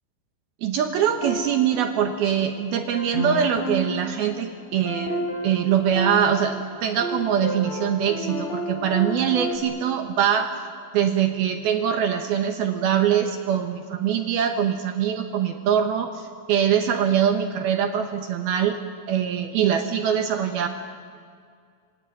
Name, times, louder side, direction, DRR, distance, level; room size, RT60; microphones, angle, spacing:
voice 1, 0.6-10.5 10.9-18.8 19.1-20.7, right 9 dB, 70° right, 6 dB, 2.5 m, -23 dB
sound 1, 1.2-2.5 2.9-9.6, equal, 60° left, 5.5 m, -31 dB
26.5 x 22.5 x 9.3 m, 2.1 s
omnidirectional pair, 5.6 m